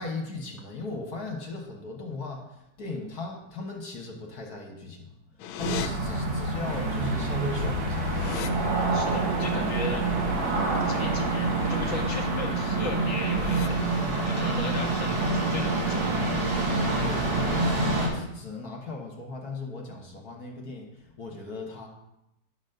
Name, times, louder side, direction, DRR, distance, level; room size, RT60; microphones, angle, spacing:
voice 1, 0.0-2.5 2.8-5.1 5.5-8.1 9.4-9.5 17.0-21.9, left 3 dB, 55° left, 0 dB, 1.7 m, -37 dB
sound 1, 5.4-5.9 7.1-7.2 7.4-8.5 11.7-12.0 12.4-12.7 13.2-13.7, left 9 dB, 90° left, 1.4 m, -37 dB
sound 2, 5.6-18.1, right 2 dB, 75° right, 3.3 m, -27 dB
sound 3, 6.6-12.3, right 1 dB, 45° right, 1.3 m, -39 dB
voice 2, 8.9-10.0 10.5-13.8 14.2-16.3, left 1 dB, 10° right, -2 dB, 1.1 m, -36 dB
10.5 x 4.1 x 6.6 m, 0.86 s
omnidirectional pair, 2.2 m